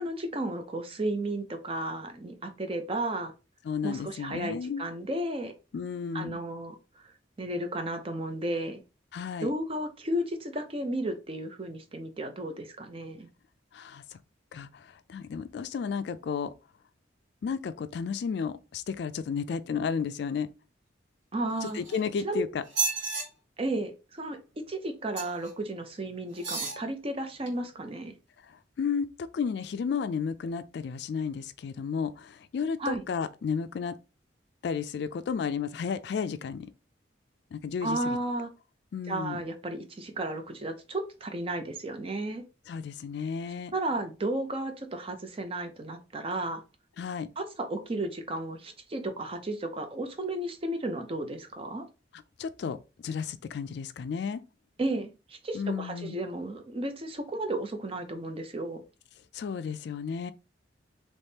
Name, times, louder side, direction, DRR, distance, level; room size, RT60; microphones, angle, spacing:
voice 1, 0.0-3.3 3.8-5.5 6.1-6.8 7.4-8.8 9.4-13.3 21.3-21.8 22.2-22.4 23.6-24.4 24.7-28.2 32.8-33.0 37.8-38.5 39.1-42.4 43.7-46.6 47.4-51.8 54.8-58.8, right 1 dB, 30° right, 0.5 m, -33 dB
voice 2, 3.6-4.9 5.7-6.4 9.1-9.5 13.7-14.2 14.5-16.5 17.4-20.5 21.6-22.6 28.4-29.1 29.3-34.0 34.6-36.7 37.5-38.2 38.9-39.4 42.7-43.7 47.0-47.3 52.1-52.8 53.0-54.4 55.5-56.2 59.3-60.3, left 6 dB, 60° left, 0.3 m, -33 dB
sound 1, 21.5-22.2 22.6-23.2 25.1-25.5 26.3-26.8 27.5-27.6, right 4 dB, 70° right, 1.5 m, -32 dB
3.5 x 3.0 x 2.7 m
head